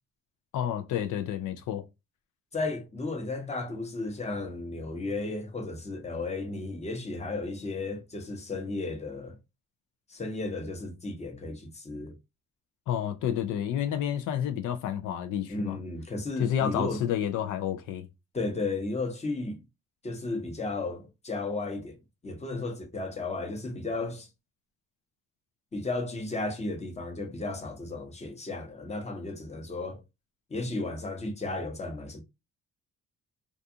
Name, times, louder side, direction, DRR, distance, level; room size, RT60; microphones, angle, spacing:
voice 1, 0.5-1.8 12.9-15.8 16.4-18.1, left 10 dB, 85° left, 0.5 m, -30 dB
voice 2, 2.5-9.4 10.1-12.2 15.5-17.0 18.3-19.6 20.0-22.0 22.2-24.3 25.7-30.0 30.5-32.2, left 2 dB, 20° left, 0.8 m, -34 dB
2.5 x 2.3 x 2.6 m
cardioid pair, 90°, 30 cm